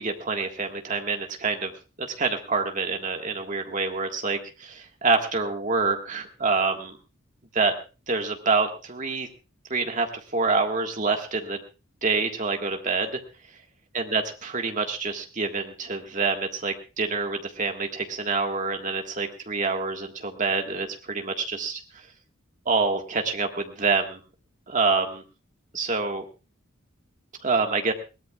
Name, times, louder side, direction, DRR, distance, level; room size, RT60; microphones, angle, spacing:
voice 1, 0.0-1.7 2.0-7.0 7.5-7.7 8.1-9.3 9.7-11.6 12.0-13.2 13.9-21.8 22.6-24.2 24.7-25.2 25.7-26.2 27.4-27.9, right 4 dB, 35° right, 3 dB, 1.7 m, -26 dB
22.0 x 17.5 x 2.4 m, 0.31 s
head